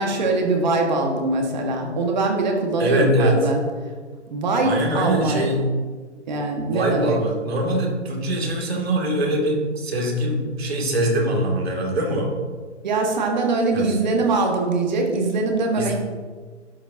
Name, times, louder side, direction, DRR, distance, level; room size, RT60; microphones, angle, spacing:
voice 1, 0.0-3.6 4.3-5.4 6.3-7.2 12.8-15.9, right 2 dB, 40° right, 2 dB, 1.7 m, -22 dB
voice 2, 2.8-3.4 4.6-5.6 6.7-12.3 13.7-14.0 15.8-15.9, right 1 dB, 60° right, 0 dB, 2.6 m, -23 dB
12.0 x 7.1 x 2.8 m, 1.5 s
hypercardioid pair, 155°, 36 cm